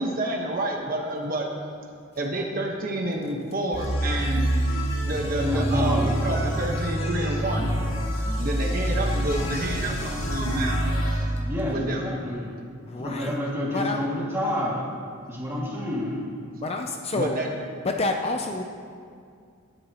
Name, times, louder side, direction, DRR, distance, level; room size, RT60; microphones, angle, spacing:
voice 1, 0.0-1.5 2.1-4.5 5.0-7.7 8.4-10.9 11.7-12.0 15.4-15.7 17.1-17.5, right 1 dB, 40° right, 0 dB, 1.2 m, -29 dB
sound 1, 3.7-11.3, equal, 75° left, 2.1 m, -26 dB
voice 2, 5.4-6.1 11.5-12.5 13.0-14.8 15.3-16.2, left 1 dB, 10° right, -6 dB, 2.3 m, -28 dB
voice 3, 12.8-13.3 13.7-14.0 16.6-17.4 17.8-18.6, left 2 dB, 30° left, 3 dB, 0.5 m, -28 dB
19.0 x 10.5 x 3.0 m, 2.3 s
head